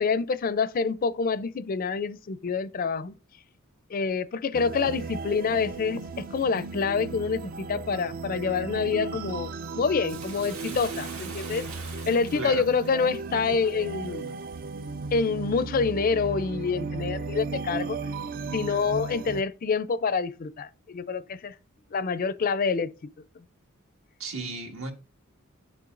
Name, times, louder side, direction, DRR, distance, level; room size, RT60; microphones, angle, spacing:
voice 1, 0.0-3.1 3.9-11.7 12.1-14.3 15.1-18.0 18.5-21.5 21.9-22.9, left 5 dB, 45° left, 0.4 m, -27 dB
sound 1, 4.5-19.4, right 4 dB, 45° right, 0.4 m, -36 dB
Bathtub (filling or washing), 10.1-14.6 15.1-15.2, right 4 dB, 90° right, 1.9 m, -43 dB
voice 2, 24.2-24.9, right 3 dB, 70° right, 1.6 m, -34 dB
9.7 x 6.8 x 2.5 m
head